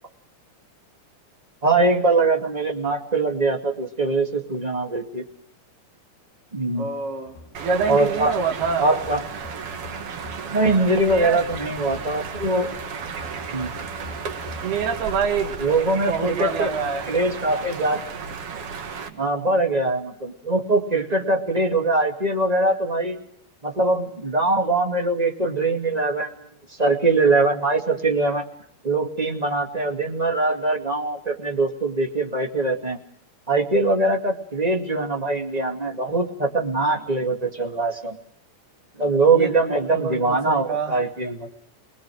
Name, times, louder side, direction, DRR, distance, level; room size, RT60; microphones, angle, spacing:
voice 1, 1.6-5.2 6.5-6.9 7.9-8.3 8.8-9.2 10.5-12.8 13.5-13.7 15.6-16.7 17.1-18.0 19.2-23.2 23.6-26.3 26.8-28.4 28.8-33.0 33.5-38.2 39.0-41.5, right 2 dB, 15° right, 2 dB, 1.6 m, -22 dB
voice 2, 6.8-7.3 7.6-8.8 11.1-11.4 14.6-15.6 16.1-17.1 19.1-19.6 39.4-40.9, right 5 dB, 75° right, 4 dB, 4.6 m, -26 dB
sound 1, 7.3-17.5, left 2 dB, 65° left, 6.3 m, -44 dB
sound 2, 7.5-19.1, right 5 dB, 50° right, 2.0 m, -34 dB
29.0 x 20.5 x 6.3 m, 0.67 s
omnidirectional pair, 4.5 m